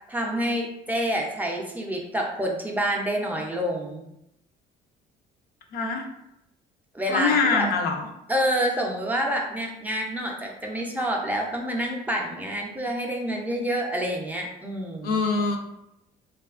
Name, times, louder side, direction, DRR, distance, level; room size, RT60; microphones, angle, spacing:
voice 1, 0.1-4.1 6.9-7.7 8.3-15.2, equal, 10° right, -1 dB, 0.4 m, -28 dB
voice 2, 5.7-6.0 7.1-8.1 15.0-15.6, left 4 dB, 65° left, 3 dB, 0.4 m, -24 dB
2.7 x 2.3 x 2.4 m, 0.82 s
cardioid pair, 110°, 17 cm